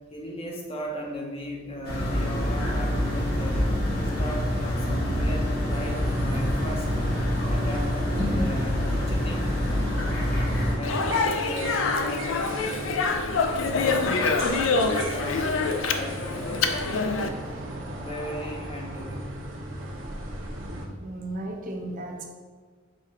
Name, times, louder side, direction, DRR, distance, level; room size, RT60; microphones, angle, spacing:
voice 1, 0.1-3.7 4.2-7.1 7.5-9.5 10.4-13.0 13.4-14.4 15.1-15.5 15.9-16.5 17.2-19.4, equal, 25° left, 0 dB, 0.6 m, -37 dB
sound 1, 1.8-10.8, equal, 45° left, 0.9 m, -26 dB
sound 2, 5.7-20.9, right 1 dB, 65° right, 0.8 m, -36 dB
Speech, 10.8-17.3, left 4 dB, 70° left, 0.3 m, -26 dB
voice 2, 21.0-22.2, right 1 dB, 40° right, 1 dB, 0.5 m, -35 dB
5.0 x 2.4 x 4.2 m, 1.5 s
head